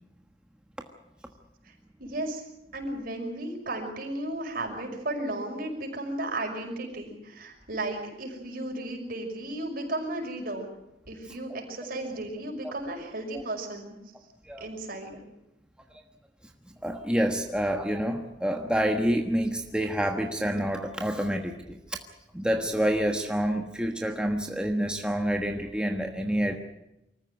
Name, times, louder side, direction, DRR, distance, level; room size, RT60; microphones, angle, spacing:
voice 1, 2.0-2.4 2.7-10.7 11.1-14.0 14.6-15.2, right 1 dB, 55° right, 2 dB, 5.8 m, -34 dB
voice 2, 16.8-22.0 22.3-26.6, equal, 5° right, 3 dB, 1.3 m, -28 dB
24.5 x 14.5 x 9.1 m, 0.89 s
head